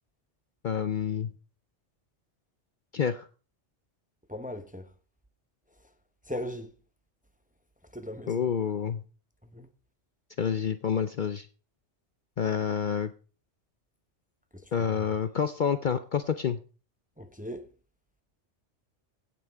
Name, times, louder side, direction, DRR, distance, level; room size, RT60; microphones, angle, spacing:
voice 1, 0.6-1.3 2.9-3.3 8.3-9.0 10.4-11.5 12.4-13.1 14.7-16.6, left 7 dB, 50° left, 0.7 m, -28 dB
voice 2, 4.3-4.9 6.3-6.7 7.9-8.5 9.5-9.7 14.5-14.6 17.2-17.7, left 1 dB, 10° right, 0.8 m, -38 dB
16.5 x 6.1 x 4.6 m
omnidirectional pair, 1.2 m